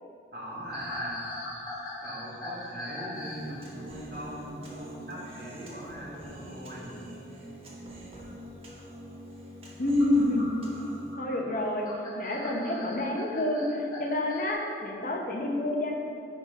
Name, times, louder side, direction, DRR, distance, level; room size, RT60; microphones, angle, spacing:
voice 1, 0.3-1.2 2.0-6.9, right 1 dB, 55° right, -5 dB, 1.7 m, -40 dB
sound 1, 0.6-3.5 3.7-4.0 6.2-6.5 7.7-7.8 9.8-14.5, left 2 dB, 25° left, 1.3 m, -41 dB
Human voice, 3.1-11.1, equal, 35° right, 1.1 m, -45 dB
voice 2, 9.8-10.5 11.2-11.9 12.1-15.9, left 1 dB, 50° left, 0 dB, 0.8 m, -28 dB
9.5 x 3.6 x 5.3 m, 2.6 s
head